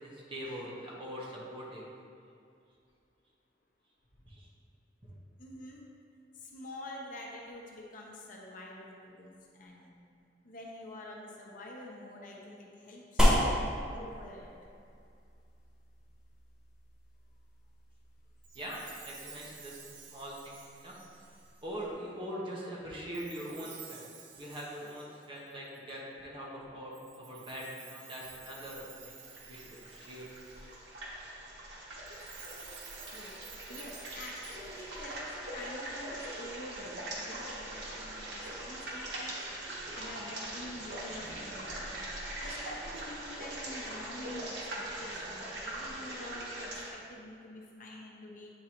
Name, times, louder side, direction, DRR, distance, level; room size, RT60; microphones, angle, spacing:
voice 1, 0.0-1.8 4.2-4.5 5.0-5.1 18.5-21.0 21.6-24.0 24.3-29.2 29.5-30.3, equal, 30° right, -5 dB, 1.0 m, -42 dB
voice 2, 5.4-5.9 6.3-10.0 10.4-14.5 33.1-33.4 33.7-41.9 42.4-48.5, left 1 dB, 50° left, -2 dB, 0.8 m, -47 dB
sound 1, 13.2-21.9, equal, 5° right, 0.7 m, -34 dB
Chime, 18.4-21.8 23.1-26.0 26.9-30.7 32.0-35.1, right 7 dB, 45° right, 0.5 m, -52 dB
sound 2, 28.7-46.9, right 1 dB, 90° right, 1.1 m, -41 dB
8.6 x 3.7 x 3.0 m, 2.4 s
head